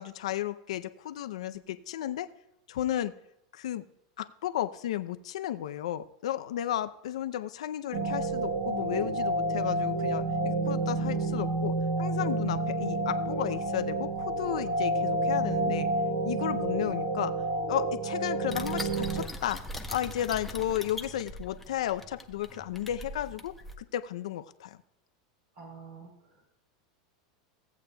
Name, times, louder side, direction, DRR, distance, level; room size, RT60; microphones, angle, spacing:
voice 1, 0.0-2.3 2.7-3.1 3.5-3.9 4.2-15.9 16.2-17.3 17.7-19.6 19.9-24.8, left 12 dB, 85° left, 11 dB, 0.5 m, -33 dB
sound 1, 7.9-19.3, right 2 dB, 75° right, 1.3 m, -29 dB
sound 2, 18.5-23.8, left 1 dB, 5° left, 0.8 m, -41 dB
voice 2, 25.5-26.5, right 5 dB, 60° right, 1 dB, 3.2 m, -48 dB
16.5 x 8.3 x 2.3 m, 0.85 s
supercardioid pair, 125°, 3 cm